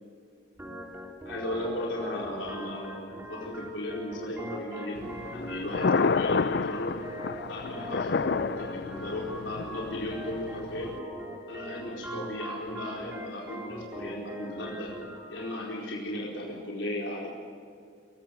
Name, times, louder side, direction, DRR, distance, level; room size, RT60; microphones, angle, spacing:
Organ, 0.6-15.6, right 1 dB, 10° right, 3.6 m, -41 dB
voice 1, 1.2-7.0 7.5-11.0 11.5-14.9 15.3-17.3, left 1 dB, 75° left, -3 dB, 4.6 m, -36 dB
Thunder, 5.0-11.0, left 4 dB, 60° left, 0.5 m, -30 dB
27.5 x 16.5 x 8.9 m, 2.4 s
head